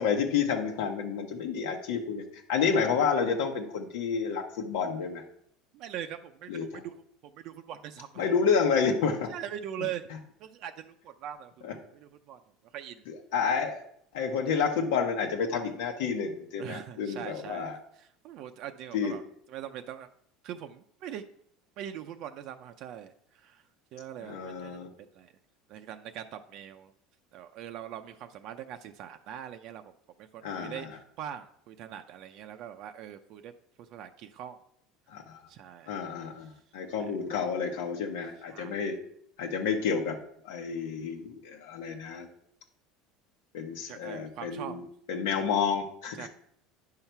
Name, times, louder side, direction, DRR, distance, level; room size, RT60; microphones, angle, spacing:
voice 1, 0.0-5.2 6.5-6.8 8.2-9.3 11.6-11.7 13.1-13.8 14.1-17.8 18.9-19.1 24.2-24.9 30.4-30.9 35.1-35.4 35.9-39.0 39.4-40.2 40.4-42.3 43.5-44.8 45.1-46.3, left 6 dB, 85° left, 0 dB, 1.1 m, -30 dB
voice 2, 5.7-8.3 9.3-10.1 10.4-12.4 12.7-13.0 16.6-19.2 19.5-20.1 20.4-21.2 21.8-23.6 23.9-24.8 25.1-25.3 25.7-26.9 27.3-29.9 30.2-33.5 33.8-34.6 35.5-36.0 38.5-38.8 43.9-44.8 46.2-46.3, right 10 dB, 55° right, 7 dB, 0.6 m, -42 dB
9.7 x 5.7 x 4.6 m, 0.68 s
supercardioid pair, 130°, 0 cm